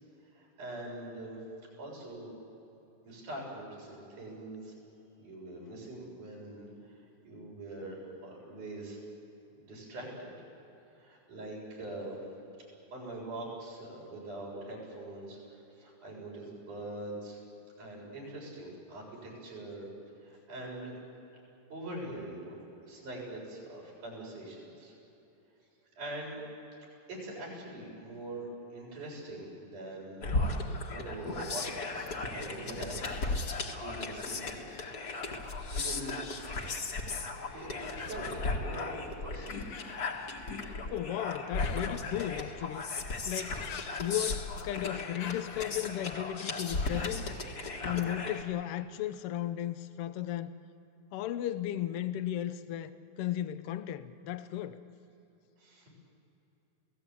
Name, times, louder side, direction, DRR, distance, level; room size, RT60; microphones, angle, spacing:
voice 1, 0.3-1.4 1.8-2.3 3.0-4.8 5.2-7.0 7.2-9.0 9.5-10.3 11.0-12.2 12.9-17.4 17.8-19.9 20.2-21.0 21.7-22.6 22.9-24.9 26.0-26.4 27.1-30.4 30.9-34.6 35.5-36.2 37.3-39.5 55.6-55.9, right 1 dB, 75° right, -3 dB, 8.5 m, -43 dB
sound 1, 30.2-48.4, left 3 dB, 40° left, 1.7 m, -36 dB
Human voice, 38.0-38.3 39.7-40.2 41.5-42.1 43.6-44.5 45.2-45.7, left 7 dB, 60° left, 2.7 m, -46 dB
voice 2, 40.9-42.8 43.3-43.5 44.0-47.3 47.8-50.5 51.1-54.8, left 12 dB, 80° left, 12 dB, 1.3 m, -35 dB
29.0 x 18.0 x 8.4 m, 3.0 s
omnidirectional pair, 3.7 m